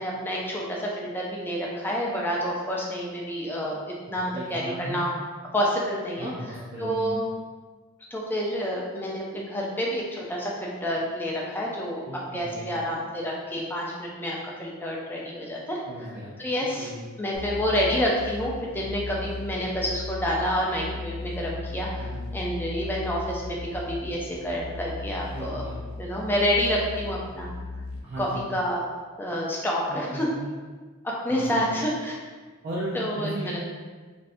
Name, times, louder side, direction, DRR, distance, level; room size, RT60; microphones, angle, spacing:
voice 1, 0.0-5.1 5.5-6.3 6.8-7.2 8.1-12.0 12.3-15.8 16.4-16.9 17.2-22.0 22.3-25.7 26.0-27.5 28.2-28.8 29.2-30.3 31.2-32.2 32.9-33.6, equal, 10° left, -3 dB, 0.4 m, -28 dB
voice 2, 4.1-5.1 6.2-7.2 12.1-12.7 15.9-16.4 16.8-17.0 22.0-22.2 25.3-25.8 28.0-28.5 29.9-30.5 31.3-31.8 32.6-33.6, right 1 dB, 45° right, -7 dB, 0.5 m, -36 dB
sound 1, 17.3-28.0, left 2 dB, 90° left, 0.5 m, -37 dB
2.6 x 2.5 x 3.3 m, 1.4 s
head